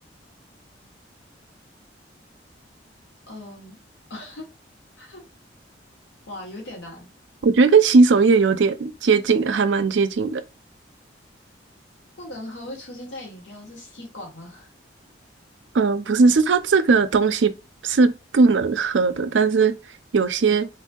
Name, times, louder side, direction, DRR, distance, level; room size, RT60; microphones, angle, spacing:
voice 1, 3.3-3.8 4.1-4.5 5.0-5.2 6.3-7.1 12.2-14.7, left 1 dB, 80° left, 1.2 m, -38 dB
voice 2, 7.4-10.4 15.7-17.5 17.8-19.7 20.1-20.7, right 4 dB, 80° right, 0.5 m, -18 dB
4.0 x 2.7 x 2.3 m
head